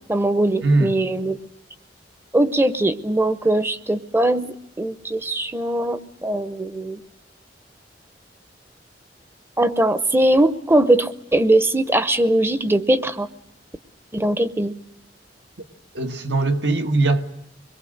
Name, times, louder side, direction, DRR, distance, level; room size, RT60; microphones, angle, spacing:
voice 1, 0.1-1.4 2.3-7.0 9.6-13.3 14.1-14.7, right 1 dB, 15° right, 0.8 m, -20 dB
voice 2, 0.6-1.0 15.9-17.2, right 2 dB, 75° right, 1.5 m, -20 dB
25.0 x 22.5 x 6.5 m
head